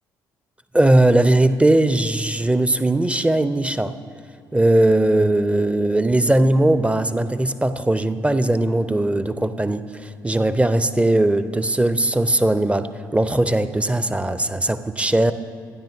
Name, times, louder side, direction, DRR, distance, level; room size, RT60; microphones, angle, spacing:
voice 1, 0.7-3.9 4.5-15.3, right 1 dB, 10° right, 13 dB, 0.7 m, -19 dB
27.5 x 10.5 x 2.7 m, 2.2 s
figure-of-eight pair, 45°, 11 cm